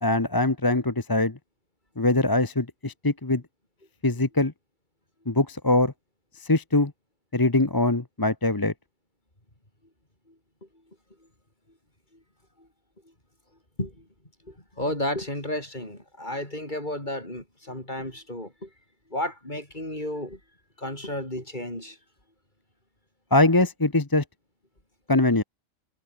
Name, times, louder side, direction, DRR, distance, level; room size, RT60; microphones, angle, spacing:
voice 1, 0.0-1.4 2.0-3.4 4.0-4.5 5.3-5.9 6.4-6.9 7.3-8.7 23.3-24.2 25.1-25.4, left 2 dB, 20° left, 1.1 m, -22 dB
voice 2, 14.5-18.7 19.1-20.4 20.8-22.0, left 1 dB, 35° left, 7.3 m, -32 dB
omnidirectional pair, 1.4 m